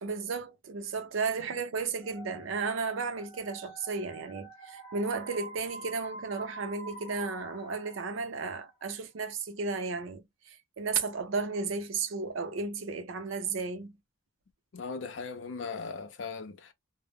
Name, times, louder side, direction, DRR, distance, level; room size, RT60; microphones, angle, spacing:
voice 1, 0.0-13.9, right 4 dB, 80° right, 0.5 m, -34 dB
sound 1, 2.0-8.8, right 2 dB, 25° left, 0.8 m, -47 dB
voice 2, 14.7-16.7, left 5 dB, 65° left, 0.5 m, -38 dB
2.0 x 2.0 x 3.3 m
head